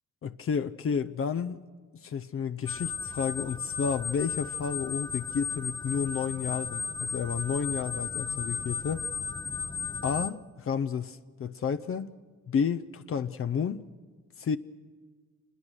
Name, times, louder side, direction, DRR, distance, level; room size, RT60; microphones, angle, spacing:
voice 1, 0.2-1.6 2.0-9.0 10.0-12.1 12.5-13.8 14.4-14.6, left 6 dB, 45° left, 0.7 m, -31 dB
sound 1, 2.7-10.3, left 5 dB, 15° left, 0.8 m, -35 dB
26.5 x 21.0 x 6.4 m
cardioid pair, 90°, 30 cm